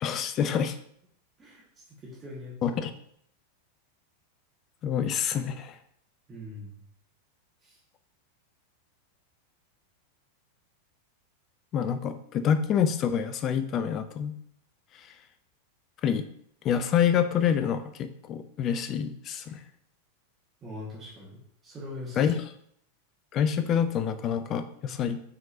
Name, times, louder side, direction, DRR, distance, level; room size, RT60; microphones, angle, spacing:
voice 1, 0.0-0.7 2.6-2.9 4.8-5.8 11.7-14.3 16.0-16.3 16.6-19.6 22.2-22.4 23.3-25.2, left 8 dB, 30° left, 10 dB, 0.4 m, -27 dB
voice 2, 2.0-2.7 6.3-6.8 7.6-7.8 20.6-22.3, left 1 dB, 20° right, -7 dB, 1.4 m, -42 dB
5.5 x 3.7 x 2.6 m, 0.67 s
figure-of-eight pair, 90°, 0 cm